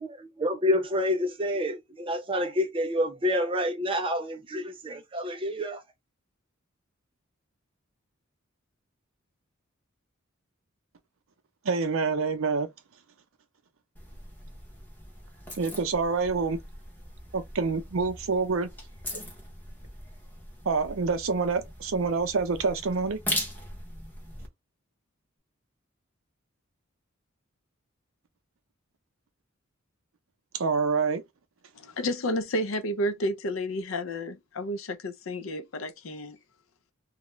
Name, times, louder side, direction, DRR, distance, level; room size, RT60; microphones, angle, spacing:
voice 1, 0.0-5.8, left 1 dB, 25° right, 0.6 m, -28 dB
voice 2, 11.6-12.7 15.5-16.6 17.3-18.7 20.7-23.2 30.5-31.2, right 4 dB, 75° right, 0.5 m, -27 dB
sound 1, 14.0-24.5, left 1 dB, 10° left, 0.8 m, -40 dB
voice 3, 31.7-36.4, left 1 dB, 70° left, 0.5 m, -31 dB
2.4 x 2.1 x 3.0 m
head